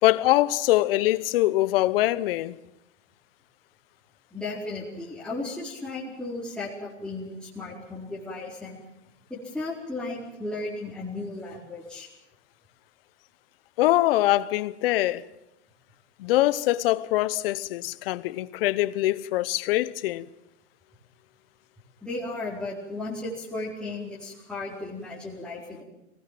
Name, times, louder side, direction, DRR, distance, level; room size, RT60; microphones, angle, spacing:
voice 1, 0.0-2.6 13.8-15.3 16.2-20.3, left 16 dB, 55° left, 1.0 m, -23 dB
voice 2, 4.3-8.8 9.3-12.1 22.0-25.8, left 2 dB, ahead, 4.7 m, -35 dB
23.0 x 19.0 x 7.6 m
hypercardioid pair, 130°, 35 cm